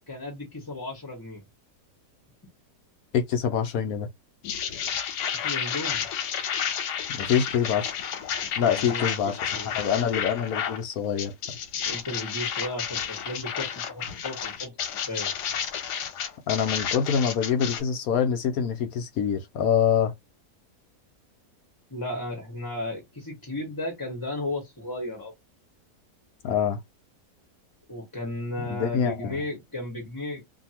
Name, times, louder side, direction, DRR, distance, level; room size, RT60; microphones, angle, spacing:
voice 1, 0.1-1.4 5.4-6.1 8.6-9.9 11.8-14.8 15.1-15.3 21.9-25.3 27.9-30.5, left 1 dB, 15° left, 0.9 m, -34 dB
voice 2, 3.1-4.1 7.1-8.0 8.6-9.4 9.7-11.3 16.5-20.1 26.4-26.8 28.7-29.4, left 7 dB, 65° left, 1.0 m, -25 dB
sound 1, 4.4-10.8 11.2-17.8, left 8 dB, 80° left, 1.3 m, -31 dB
2.8 x 2.7 x 2.8 m
omnidirectional pair, 1.8 m